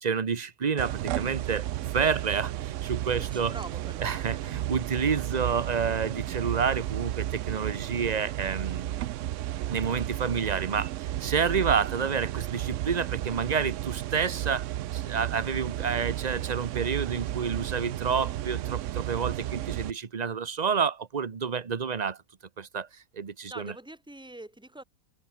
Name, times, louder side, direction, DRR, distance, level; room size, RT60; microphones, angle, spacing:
voice 1, 0.0-1.7 1.9-3.5 4.0-8.9 9.7-14.7 14.9-22.2 22.6-22.9 23.1-23.7, right 6 dB, 30° right, 1.0 m, -29 dB
sound 1, 0.8-19.9, right 14 dB, 70° right, 0.8 m, -33 dB
voice 2, 3.2-4.3 23.5-24.8, right 1 dB, 5° right, 2.5 m, -44 dB
omnidirectional pair, 1.6 m